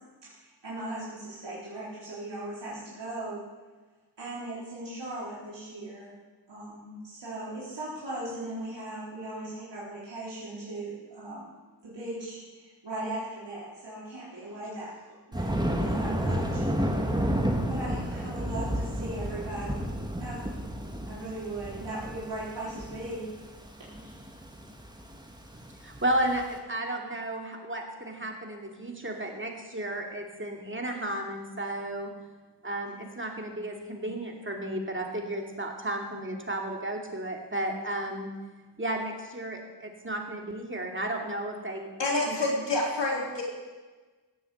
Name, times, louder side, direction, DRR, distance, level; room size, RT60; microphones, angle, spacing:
voice 1, 0.2-3.5 4.2-6.1 6.5-11.5 11.8-14.9 15.3-16.6 17.7-19.9 20.2-20.5 21.1-23.3 23.9-24.3, right 1 dB, 80° right, -8 dB, 4.1 m, -38 dB
Thunder, 15.3-26.4, equal, 10° right, 1.8 m, -31 dB
voice 2, 25.8-32.1 32.6-38.3 38.8-41.9 42.3-42.4, right 1 dB, 30° right, 1 dB, 2.5 m, -33 dB
voice 3, 42.0-43.4, left 2 dB, 80° left, -2 dB, 4.0 m, -27 dB
16.5 x 7.7 x 7.9 m, 1.3 s
wide cardioid pair, 80°, 42 cm